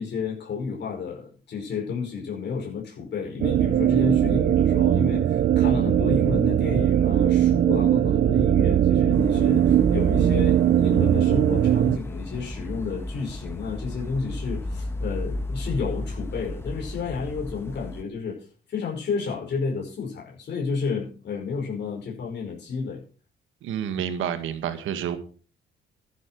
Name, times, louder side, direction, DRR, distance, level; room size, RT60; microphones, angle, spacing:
voice 1, 0.0-18.4 18.7-23.0, left 5 dB, 60° left, -2 dB, 5.1 m, -31 dB
sound 1, 3.4-12.0, right 11 dB, 55° right, 0.6 m, -20 dB
sound 2, 9.1-18.0, left 1 dB, 10° left, 1.3 m, -34 dB
voice 2, 23.6-25.2, right 9 dB, 85° right, 9 dB, 1.7 m, -29 dB
12.0 x 10.5 x 4.7 m, 0.39 s
cardioid pair, 90°, 20 cm